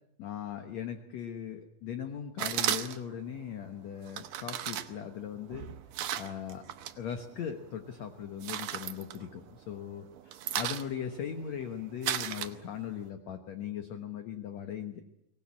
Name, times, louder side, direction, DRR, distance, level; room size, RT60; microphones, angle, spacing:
voice 1, 0.2-5.7 6.2-6.6 7.0-15.0, left 8 dB, 60° left, 7 dB, 2.0 m, -39 dB
sound 1, 2.4-3.2 4.1-7.0 7.3-7.9 8.2-9.7 10.0-13.0, right 11 dB, 70° right, 2.4 m, -35 dB
24.0 x 18.5 x 8.4 m, 0.82 s
omnidirectional pair, 4.5 m